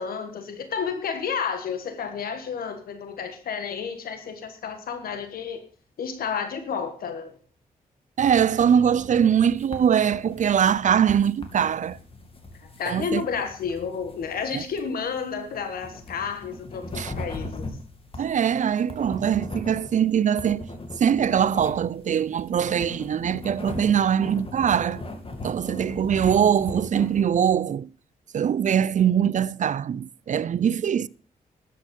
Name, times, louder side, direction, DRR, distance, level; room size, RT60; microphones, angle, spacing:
voice 1, 0.0-5.6 6.0-7.3 12.6-17.7, left 6 dB, 85° left, 1.5 m, -31 dB
voice 2, 8.2-12.0 12.9-13.2 14.5-14.6 17.0-17.1 18.2-20.7 21.0-25.0 25.4-27.9 28.3-31.1, right 8 dB, 55° right, 0.5 m, -22 dB
sound 1, 8.6-27.2, left 2 dB, 40° left, 2.6 m, -39 dB
12.5 x 8.4 x 5.4 m
cardioid pair, 75°, 15 cm